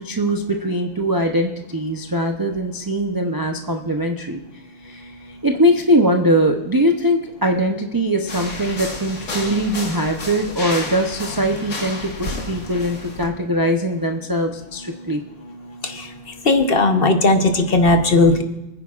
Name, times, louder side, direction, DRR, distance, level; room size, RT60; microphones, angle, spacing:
voice 1, 0.0-4.4 4.8-5.1 5.4-15.2, equal, 30° right, 3 dB, 0.4 m, -21 dB
sound 1, 8.3-13.3, left 2 dB, 75° left, 2.0 m, -31 dB
voice 2, 16.4-18.4, left 2 dB, 45° left, 6 dB, 1.0 m, -16 dB
29.0 x 9.9 x 2.4 m, 0.97 s
omnidirectional pair, 1.5 m